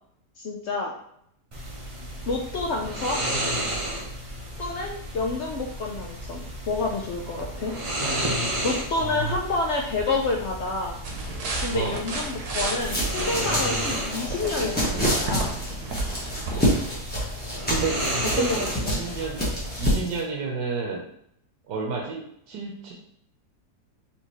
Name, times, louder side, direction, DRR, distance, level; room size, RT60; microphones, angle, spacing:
voice 1, 0.4-0.9 2.3-3.2 4.6-7.8 8.6-11.0 11.6-15.5 18.4-19.0, left 3 dB, 80° left, 0 dB, 0.6 m, -29 dB
sound 1, 1.5-19.9, right 1 dB, 40° right, 0.4 m, -32 dB
voice 2, 8.9-9.4 11.7-11.9 17.7-19.4 19.8-21.0 21.7-22.9, right 5 dB, 90° right, -2 dB, 1.4 m, -30 dB
sound 2, 11.0-16.9, right 3 dB, 70° right, 1.3 m, -33 dB
sound 3, 12.8-20.2, equal, 5° left, 1.0 m, -28 dB
4.4 x 3.4 x 3.0 m, 0.71 s
omnidirectional pair, 1.8 m